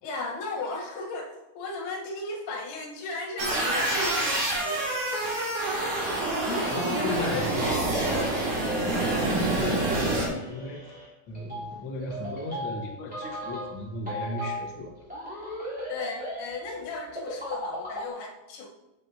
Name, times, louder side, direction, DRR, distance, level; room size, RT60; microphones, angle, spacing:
voice 1, 0.0-4.9 6.5-7.9 15.9-18.7, left 2 dB, 85° left, 0 dB, 3.3 m, -35 dB
sound 1, 3.4-10.3, right 2 dB, 80° right, 4.2 m, -27 dB
voice 2, 6.4-7.8 8.7-10.8 11.3-14.9, left 2 dB, 60° left, 1 dB, 1.2 m, -35 dB
sound 2, 8.5-18.1, equal, ahead, 3.0 m, -38 dB
13.0 x 7.5 x 2.8 m, 0.97 s
omnidirectional pair, 4.3 m